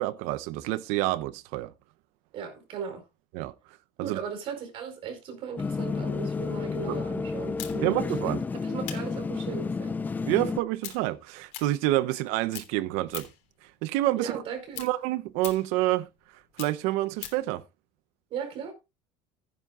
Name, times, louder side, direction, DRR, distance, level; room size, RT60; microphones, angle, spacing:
voice 1, 0.0-1.7 3.3-3.5 4.0-4.2 6.9-7.0 7.8-8.4 10.3-13.3 13.8-14.3 14.8-16.1 16.6-17.6, right 16 dB, 75° right, 0.9 m, -28 dB
voice 2, 2.3-3.0 4.0-10.0 14.1-14.9 18.3-18.7, right 7 dB, 50° right, 4.7 m, -37 dB
sound 1, 5.6-10.6, left 4 dB, 15° left, 0.5 m, -31 dB
sound 2, 7.6-12.2 12.5-13.5 13.9-17.5, left 13 dB, 75° left, 3.2 m, -43 dB
16.0 x 9.9 x 2.5 m
cardioid pair, 145°, 12 cm